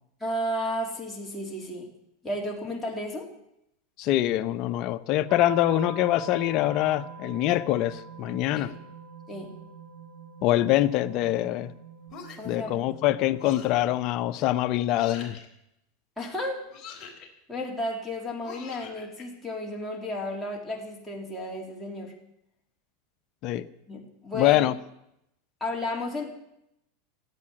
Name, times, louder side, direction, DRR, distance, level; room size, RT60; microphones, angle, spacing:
voice 1, 0.2-1.9 2.2-3.3 8.5-8.7 9.3-9.5 12.4-12.8 16.2-16.6 17.5-22.1 23.9-24.6 25.6-26.3, left 1 dB, 5° left, -3 dB, 3.5 m, -33 dB
voice 2, 4.0-8.7 10.4-11.7 12.4-15.4 23.4-23.6 24.3-24.7, left 14 dB, 45° left, 11 dB, 0.8 m, -24 dB
sound 1, 5.3-13.9, right 5 dB, 45° right, 6.4 m, -44 dB
sound 2, 12.1-12.6 13.4-13.8 14.9-15.5 16.7-17.3 18.4-19.2, left 5 dB, 25° left, 4.0 m, -44 dB
15.0 x 8.6 x 9.9 m, 0.82 s
supercardioid pair, 145°, 0 cm